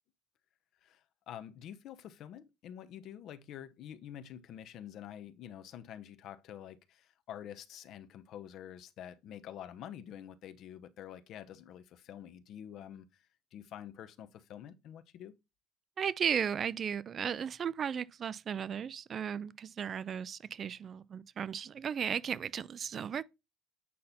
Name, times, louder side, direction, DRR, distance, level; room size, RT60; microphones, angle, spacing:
voice 1, 0.8-13.2 13.5-15.3, left 10 dB, 50° left, 0.9 m, -48 dB
voice 2, 16.0-23.2, right 8 dB, 30° right, 0.4 m, -35 dB
8.6 x 5.7 x 4.2 m
cardioid pair, 150°, 0 cm